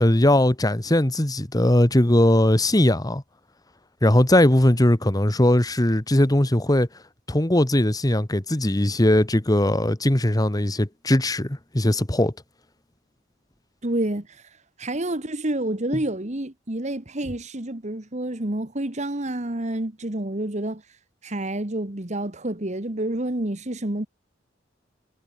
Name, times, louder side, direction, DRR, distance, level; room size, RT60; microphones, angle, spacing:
voice 1, 0.0-3.2 4.0-6.9 7.3-12.3, left 1 dB, 20° left, 1.4 m, -19 dB
voice 2, 13.8-14.3 14.8-20.8 21.2-24.1, right 1 dB, 40° right, 1.8 m, -28 dB
head